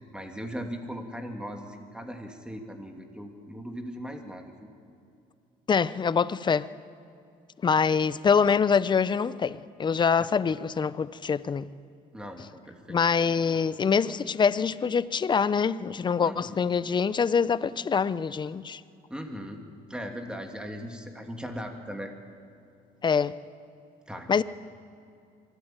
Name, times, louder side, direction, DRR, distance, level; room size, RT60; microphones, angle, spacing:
voice 1, 0.1-4.7 10.2-10.3 12.1-13.6 16.2-16.6 19.1-19.6 19.9-22.1 24.1-24.3, equal, 5° right, 4 dB, 2.3 m, -39 dB
voice 2, 5.7-6.7 7.6-11.7 12.9-18.8 23.0-23.3 24.3-24.4, left 6 dB, 25° left, 16 dB, 0.6 m, -25 dB
23.5 x 13.0 x 9.0 m, 2.5 s
cardioid pair, 110°, 17 cm